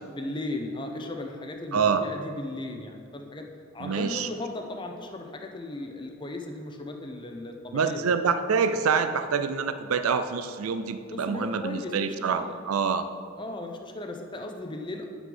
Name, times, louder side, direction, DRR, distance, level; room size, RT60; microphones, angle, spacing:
voice 1, 0.0-3.5 3.7-8.0 11.1-12.6 13.4-15.1, left 2 dB, 20° left, 3 dB, 0.7 m, -36 dB
voice 2, 1.7-2.0 3.8-4.3 7.7-13.1, right 5 dB, 90° right, 10 dB, 0.5 m, -26 dB
9.5 x 6.0 x 5.4 m, 2.3 s
head